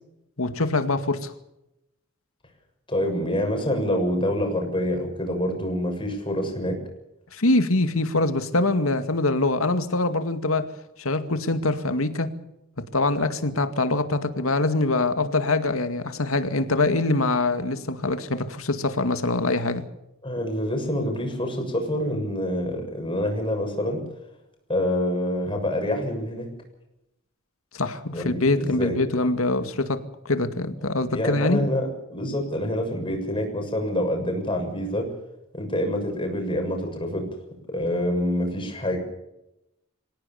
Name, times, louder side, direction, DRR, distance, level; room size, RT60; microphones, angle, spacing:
voice 1, 0.4-1.3 7.3-10.7 11.0-12.3 12.8-19.9 27.7-31.6, left 2 dB, 85° left, 10 dB, 2.1 m, -24 dB
voice 2, 2.9-6.8 20.2-24.0 24.7-26.5 28.1-29.0 31.1-35.1 35.5-37.3 37.7-39.0, left 1 dB, 25° left, 3 dB, 7.0 m, -26 dB
25.0 x 17.5 x 7.2 m, 0.88 s
head